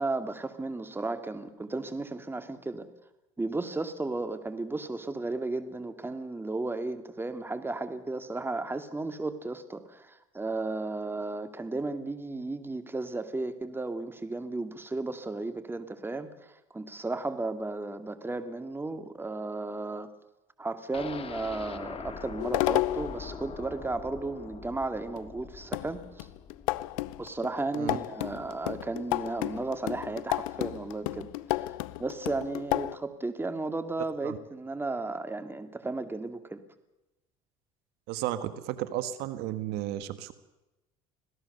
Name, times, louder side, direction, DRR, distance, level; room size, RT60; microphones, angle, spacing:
voice 1, 0.0-2.9 3.4-20.1 20.6-26.3 27.2-31.7 32.0-36.6, right 2 dB, 15° right, 9 dB, 2.3 m, -34 dB
sound 1, 20.9-28.8 29.2-29.3 29.6-29.7, left 6 dB, 35° left, 2.0 m, -44 dB
sound 2, 22.4-23.2 25.2-25.3 25.7-33.0, left 18 dB, 85° left, 0.7 m, -32 dB
voice 2, 38.1-40.3, right 13 dB, 70° right, 12 dB, 1.6 m, -33 dB
26.0 x 17.5 x 6.9 m, 0.97 s
supercardioid pair, 90°, 17 cm